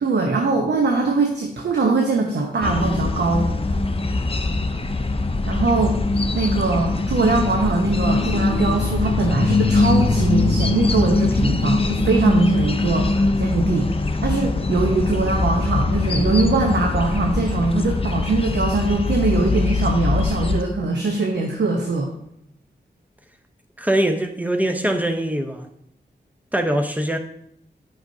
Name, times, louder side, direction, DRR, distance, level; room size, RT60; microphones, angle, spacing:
voice 1, 0.0-3.5 5.5-6.0 6.3-22.1, right 3 dB, 75° right, 1 dB, 0.9 m, -22 dB
sound 1, 2.6-20.6, left 3 dB, 30° left, 0.6 m, -22 dB
voice 2, 23.8-25.7 26.5-27.2, right 1 dB, 10° right, 5 dB, 0.9 m, -22 dB
9.2 x 5.8 x 2.8 m, 0.72 s
cardioid pair, 50°, 18 cm